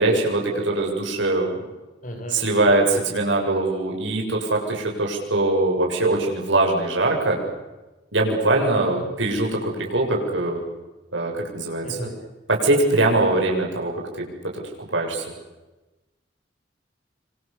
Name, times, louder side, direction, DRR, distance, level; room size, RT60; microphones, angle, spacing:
voice 1, 0.0-1.6 2.3-7.4 8.1-10.6 11.1-12.0 12.5-13.9 14.5-14.6 14.9-15.2, right 2 dB, 75° right, 0 dB, 7.4 m, -22 dB
voice 2, 2.0-2.6 8.5-9.0 11.8-12.1, equal, 45° left, 4 dB, 6.8 m, -35 dB
27.0 x 26.5 x 7.1 m, 1.1 s
head